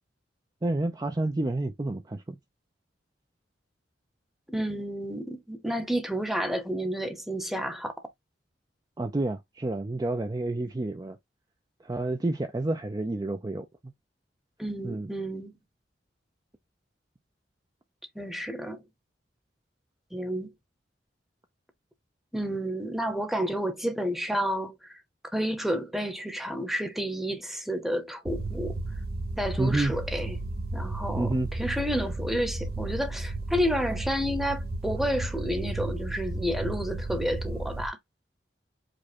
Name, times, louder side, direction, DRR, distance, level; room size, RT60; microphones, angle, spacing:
voice 1, 0.6-2.4 9.0-11.2 11.8-13.7 14.8-15.1 29.6-29.9 31.1-31.5, right 2 dB, 20° right, 0.4 m, -29 dB
voice 2, 4.5-7.9 14.6-15.5 18.1-18.8 20.1-20.5 22.3-25.0 25.3-28.8 29.4-30.4 30.7-38.0, equal, ahead, 0.8 m, -30 dB
sound 1, 28.3-37.9, right 2 dB, 60° right, 0.8 m, -33 dB
5.1 x 2.2 x 4.3 m
head